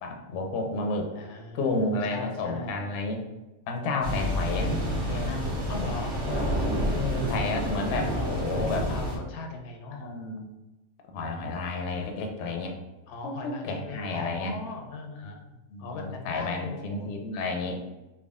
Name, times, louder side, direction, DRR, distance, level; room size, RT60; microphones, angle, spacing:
voice 1, 0.0-1.1 1.5-3.2 3.7-5.5 6.3-6.5 6.9-8.9 9.9-10.5 11.1-12.7 13.2-14.6 15.2-15.3 15.7-17.8, left 2 dB, 65° left, 2 dB, 0.8 m, -31 dB
voice 2, 1.1-2.8 5.7-6.1 6.7-7.1 8.1-10.1 13.1-17.1, left 3 dB, 85° left, 3 dB, 1.1 m, -38 dB
sound 1, 4.0-9.2, equal, 85° right, 1.6 m, -29 dB
3.5 x 2.2 x 3.4 m, 1.0 s
omnidirectional pair, 1.5 m